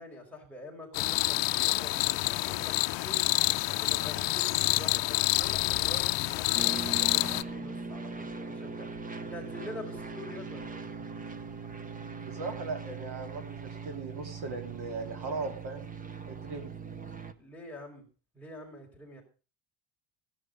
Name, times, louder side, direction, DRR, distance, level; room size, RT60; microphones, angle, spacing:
voice 1, 0.0-3.3 3.8-8.9 9.3-10.9 17.4-18.1 18.3-19.2, left 1 dB, 5° left, -2 dB, 4.7 m, -46 dB
sound 1, 0.9-7.4, left 20 dB, 60° left, 0.7 m, -28 dB
sound 2, 6.5-17.3, right 4 dB, 15° right, 0.9 m, -40 dB
voice 2, 12.2-15.9 16.3-16.7, right 3 dB, 55° right, 6 dB, 2.8 m, -38 dB
16.0 x 11.0 x 5.3 m, 0.36 s
cardioid pair, 160°, 47 cm